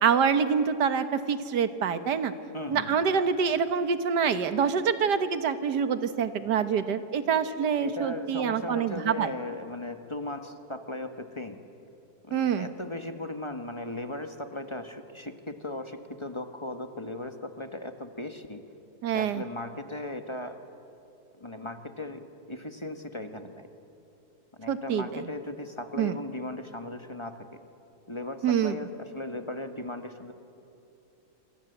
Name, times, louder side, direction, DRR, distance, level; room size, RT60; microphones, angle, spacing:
voice 1, 0.0-2.3 2.7-9.3 12.3-12.7 19.0-19.4 24.7-25.3 26.0-26.2 28.4-28.7, right 7 dB, 90° right, 11 dB, 1.8 m, -26 dB
voice 2, 2.5-3.0 7.8-11.6 12.2-18.6 19.1-20.6 21.4-23.7 24.6-27.6 28.1-30.3, left 1 dB, 20° left, 7 dB, 1.2 m, -37 dB
27.0 x 25.0 x 8.0 m, 2.9 s
omnidirectional pair, 1.7 m